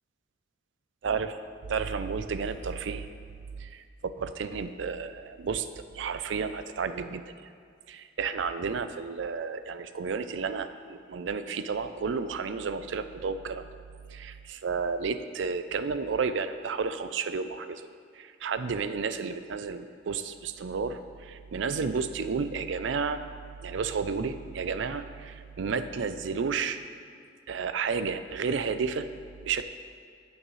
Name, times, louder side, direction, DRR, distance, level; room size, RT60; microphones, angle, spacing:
voice 1, 1.7-3.1 3.6-7.2 7.9-13.6 14.1-17.9 18.1-23.2 23.6-26.8 27.5-29.1 29.4-29.6, right 5 dB, 75° right, 10 dB, 0.4 m, -32 dB
14.5 x 6.4 x 3.2 m, 2.2 s
head